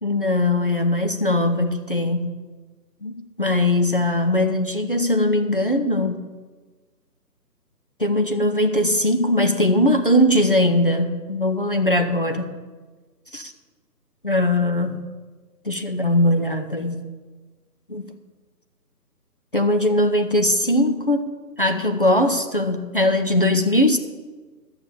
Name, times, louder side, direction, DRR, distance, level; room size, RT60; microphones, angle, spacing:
voice 1, 0.0-2.4 3.0-6.2 8.0-12.6 13.3-13.5 14.2-15.1 15.6-17.1 17.9-18.1 19.5-21.3 21.6-24.0, left 1 dB, 35° left, 6 dB, 0.6 m, -20 dB
12.0 x 6.7 x 7.4 m, 1.3 s
figure-of-eight pair, 150°, 50 cm